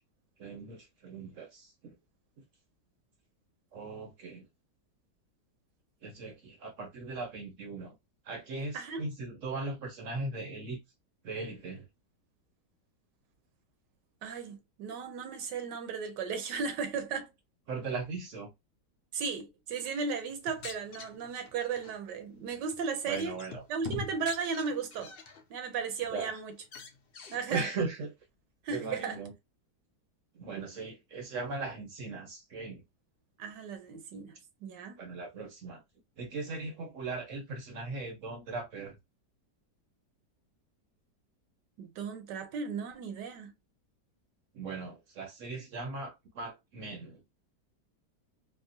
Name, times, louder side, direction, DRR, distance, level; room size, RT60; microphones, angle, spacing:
voice 1, 0.4-1.9 3.7-4.4 6.0-8.0 8.2-10.8 11.2-11.9 17.7-18.5 23.1-23.6 26.1-26.4 27.5-28.1 28.7-29.3 30.3-32.8 35.0-35.8 36.2-39.0 44.5-47.2, right 3 dB, 60° right, 0.9 m, -38 dB
voice 2, 14.2-17.3 19.1-23.4 23.7-25.1 25.5-26.5 27.3-27.7 28.6-29.2 33.4-35.0 41.8-43.5, right 5 dB, 80° right, 1.3 m, -35 dB
sound 1, 20.3-21.9 22.5-22.8 23.1-25.4 25.8-26.3 26.6-27.4, left 4 dB, 70° left, 0.5 m, -44 dB
3.6 x 2.1 x 2.6 m
omnidirectional pair, 1.8 m